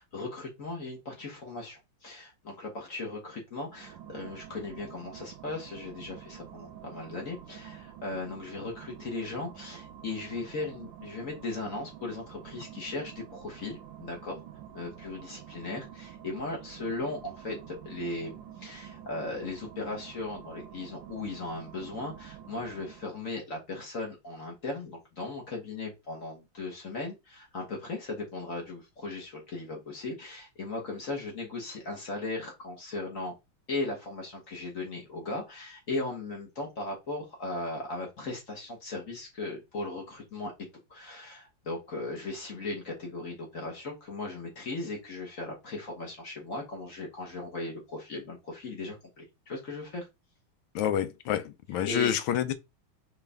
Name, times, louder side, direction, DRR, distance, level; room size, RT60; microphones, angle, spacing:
voice 1, 0.0-14.4 14.7-33.3 33.7-40.5 40.9-50.1 51.8-52.1, left 2 dB, 45° left, 1.4 m, -37 dB
sound 1, 3.6-23.4, right 10 dB, 75° right, 1.2 m, -48 dB
voice 2, 50.7-52.5, left 10 dB, 85° left, 1.5 m, -28 dB
4.6 x 3.2 x 3.4 m
omnidirectional pair, 2.3 m